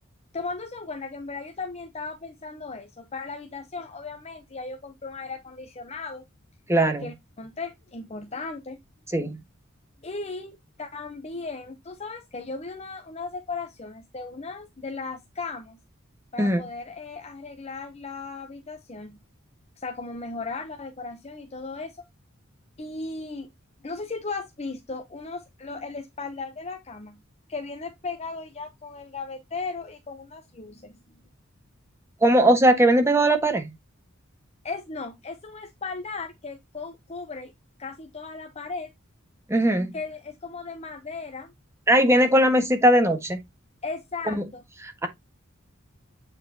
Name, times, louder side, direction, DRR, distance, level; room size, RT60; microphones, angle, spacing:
voice 1, 0.3-6.2 7.0-8.8 10.0-15.8 16.3-19.2 19.8-22.0 22.8-23.5 23.8-27.2 27.5-31.0 34.6-37.5 37.8-38.9 39.9-41.5 42.0-42.2 43.8-44.6, left 4 dB, 30° left, 0.8 m, -36 dB
voice 2, 6.7-7.1 9.1-9.3 16.4-16.7 32.2-33.7 39.5-39.9 41.9-43.4 44.3-44.4 44.8-45.1, right 1 dB, 15° right, 1.5 m, -19 dB
8.5 x 4.5 x 2.8 m
head